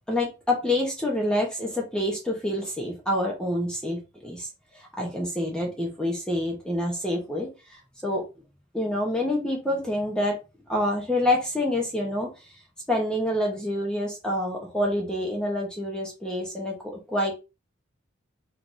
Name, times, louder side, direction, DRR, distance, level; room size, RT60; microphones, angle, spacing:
voice 1, 0.1-4.5 4.7-8.2 8.7-10.3 10.7-12.3 12.9-16.7 17.1-17.3, left 1 dB, 5° left, -1 dB, 1.0 m, -27 dB
4.6 x 3.4 x 2.7 m, 0.28 s
head